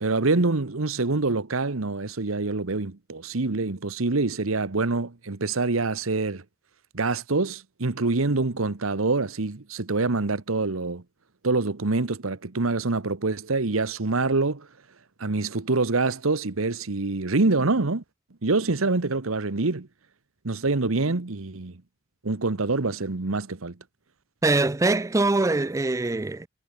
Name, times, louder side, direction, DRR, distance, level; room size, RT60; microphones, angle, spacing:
voice 1, 0.0-6.4 6.9-11.0 11.4-14.7 15.2-18.0 18.4-19.9 20.4-21.7 22.2-23.8, right 3 dB, 85° right, 1.2 m, -25 dB
voice 2, 24.4-26.5, right 2 dB, 15° right, 0.4 m, -23 dB
head